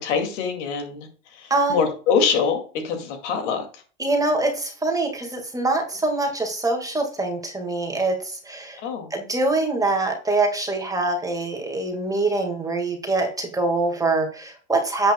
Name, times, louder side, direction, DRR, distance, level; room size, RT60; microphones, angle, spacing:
voice 1, 0.0-3.6 8.8-9.1, left 6 dB, 70° left, 5 dB, 2.4 m, -24 dB
voice 2, 1.5-1.8 4.0-8.8 9.1-15.1, right 2 dB, 10° right, 3 dB, 1.8 m, -24 dB
10.5 x 8.3 x 2.2 m, 0.40 s
supercardioid pair, 125°, 36 cm